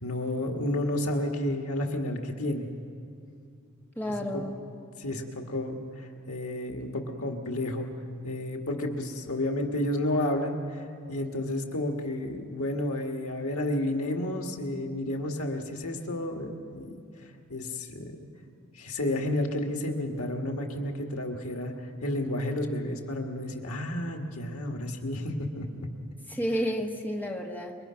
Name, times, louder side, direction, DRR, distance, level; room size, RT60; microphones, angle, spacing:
voice 1, 0.0-2.7 4.2-4.4 5.0-7.9 8.2-10.8 11.1-16.9 17.5-18.3 18.7-21.7 22.0-25.9, left 1 dB, 85° left, 3 dB, 2.0 m, -31 dB
voice 2, 4.0-4.6 26.3-27.8, equal, 10° left, 1 dB, 1.5 m, -31 dB
27.5 x 23.0 x 5.9 m, 2.4 s
head